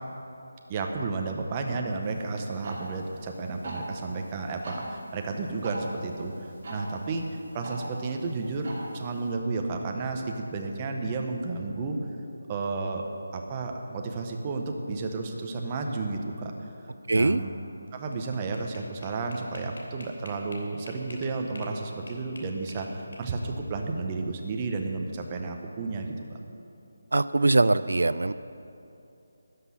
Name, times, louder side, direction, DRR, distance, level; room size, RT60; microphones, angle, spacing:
voice 1, 0.7-7.3 7.5-12.0 12.5-16.5 17.1-17.5 17.9-26.4, right 3 dB, 15° right, 3 dB, 0.7 m, -32 dB
sound 1, 2.0-9.3, right 1 dB, 35° right, 2.7 m, -42 dB
voice 2, 17.1-17.4 27.1-28.3, right 2 dB, 80° right, 14 dB, 0.4 m, -22 dB
sound 2, 17.9-21.8 22.1-23.6, left 1 dB, 85° left, 2.8 m, -47 dB
13.0 x 6.0 x 9.7 m, 2.8 s
figure-of-eight pair, 175°, 0 cm